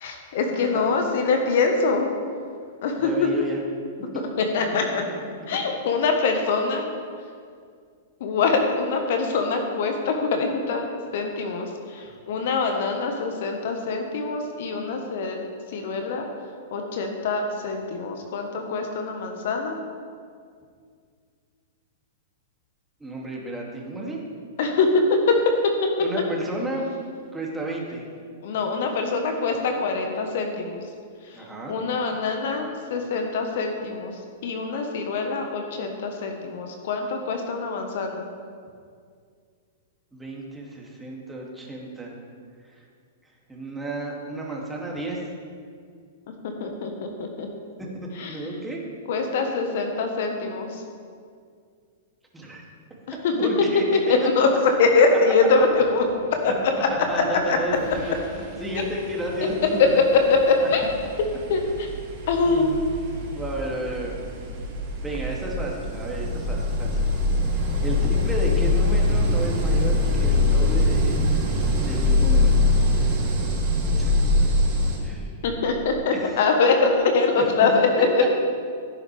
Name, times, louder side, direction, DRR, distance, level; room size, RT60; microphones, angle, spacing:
voice 1, 0.0-2.1 2.8-3.1 4.5-5.0 5.5-6.8 8.2-10.8 11.1-11.7 12.3-15.4 15.7-16.2 16.7-19.8 24.6-25.9 28.4-30.8 31.7-34.1 34.4-38.2 46.6-47.5 48.2-48.3 49.1-50.7 53.2-53.3 54.4-54.5 54.8-56.0 56.4-56.9 57.1-57.6 60.5-60.8 61.5-61.6 62.3-62.8 75.4-78.3, left 4 dB, 55° left, 4 dB, 1.4 m, -23 dB
voice 2, 0.5-0.9 3.0-3.6 4.1-4.2 4.7-4.9 23.0-24.2 26.0-26.9 27.3-28.1 31.3-31.7 40.1-42.1 42.8-42.9 43.5-45.2 48.1-48.8 52.3-52.6 53.3-54.0 55.5-55.6 57.1-60.3 60.6-60.7 62.4-62.8 63.3-64.1 65.0-67.0 67.5-71.3 71.9-72.6 74.0-74.1 75.0-75.3 76.1-76.3 77.3-77.4 78.2-78.3, right 1 dB, 10° right, -3 dB, 2.6 m, -32 dB
sound 1, 57.2-57.4 57.7-75.0, left 2 dB, 40° right, 3.0 m, -24 dB
16.0 x 9.7 x 3.5 m, 2.2 s
figure-of-eight pair, 105°, 0 cm